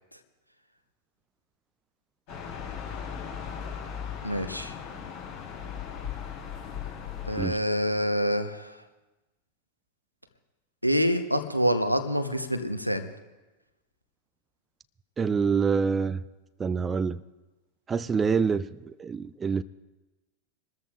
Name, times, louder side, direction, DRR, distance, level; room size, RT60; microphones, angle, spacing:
sound 1, 2.3-7.5, left 7 dB, 45° left, 3.6 m, -37 dB
voice 1, 4.2-4.7 7.2-8.8 10.8-13.1, equal, 90° right, 0.9 m, -26 dB
voice 2, 15.2-16.2 16.6-17.2 17.9-19.6, right 5 dB, 20° right, 0.3 m, -26 dB
27.5 x 13.5 x 2.4 m
figure-of-eight pair, 90°, 0 cm